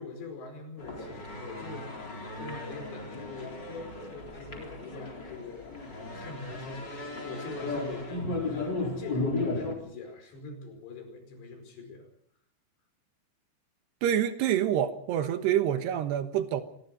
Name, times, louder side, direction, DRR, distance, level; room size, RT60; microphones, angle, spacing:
voice 1, 0.0-2.1 2.4-12.1, left 3 dB, 75° left, 5 dB, 7.2 m, -43 dB
sound 1, 0.8-9.7, left 2 dB, 25° left, 4.2 m, -35 dB
voice 2, 14.0-16.6, right 10 dB, 75° right, 9 dB, 3.2 m, -27 dB
25.5 x 20.0 x 5.3 m, 0.69 s
omnidirectional pair, 5.1 m